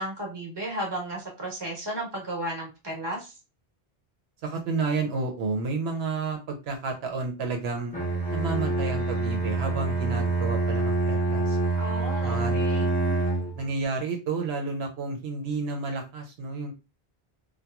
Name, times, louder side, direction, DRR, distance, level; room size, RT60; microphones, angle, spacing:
voice 1, 0.0-3.3 11.7-12.9, right 1 dB, 25° right, -1 dB, 1.0 m, -34 dB
voice 2, 4.4-7.9 8.3-11.6 12.2-12.6 13.6-16.7, right 3 dB, 80° right, 2 dB, 0.9 m, -31 dB
Bowed string instrument, 7.9-13.6, right 3 dB, 10° left, 0.5 m, -26 dB
2.8 x 2.2 x 2.2 m, 0.28 s
omnidirectional pair, 1.1 m